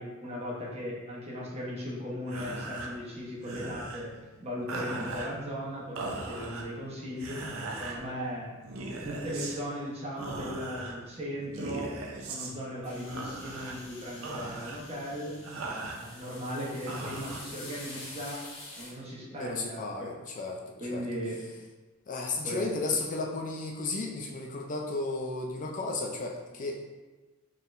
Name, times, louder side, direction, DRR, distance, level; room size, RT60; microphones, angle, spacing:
voice 1, 0.0-4.1 4.4-7.4 7.8-8.5 9.0-15.3 15.8-18.4 18.8-20.1 20.8-21.4 22.4-22.6, equal, 30° right, -5 dB, 1.0 m, -37 dB
sound 1, 2.2-18.1, right 2 dB, 80° right, 0.6 m, -40 dB
sound 2, 12.8-18.9, left 2 dB, 65° left, 1.0 m, -47 dB
voice 2, 19.3-21.0 22.1-26.9, left 3 dB, 40° left, 1 dB, 0.4 m, -34 dB
4.4 x 3.5 x 2.5 m, 1.2 s
head